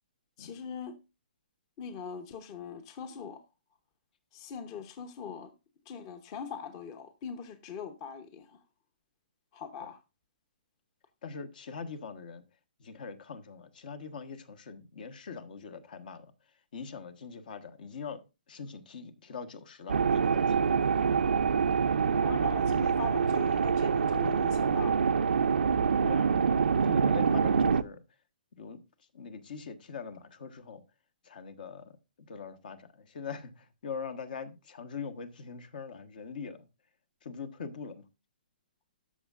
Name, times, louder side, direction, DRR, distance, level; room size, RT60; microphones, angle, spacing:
voice 1, 0.4-1.0 1.8-3.4 4.3-5.5 5.9-8.6 9.5-10.0 22.1-25.0, left 6 dB, 30° left, 0.8 m, -41 dB
voice 2, 11.2-12.4 12.8-16.3 16.7-18.2 18.5-20.8 26.0-28.0 28.6-28.8 29.1-30.8 31.2-36.7 37.2-38.0, left 5 dB, 60° left, 1.3 m, -42 dB
sound 1, 19.9-27.8, right 6 dB, 90° right, 0.5 m, -26 dB
13.5 x 6.3 x 2.5 m
hypercardioid pair, 150°, 5 cm